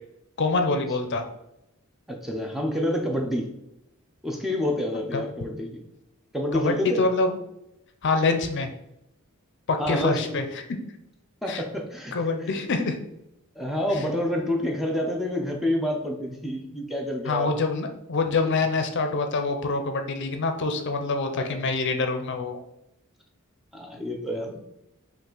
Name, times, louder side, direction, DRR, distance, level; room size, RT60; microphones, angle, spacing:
voice 1, 0.4-1.2 5.1-5.2 6.5-7.4 8.0-8.7 9.7-10.6 11.5-11.6 12.1-13.0 17.3-22.6, left 3 dB, 55° left, 6 dB, 0.5 m, -25 dB
voice 2, 2.1-3.5 4.2-5.8 6.3-7.0 9.8-10.4 11.4-12.2 13.6-17.6 21.3-21.6 23.7-24.6, left 1 dB, ahead, 1 dB, 0.6 m, -28 dB
5.5 x 2.5 x 3.8 m, 0.85 s
head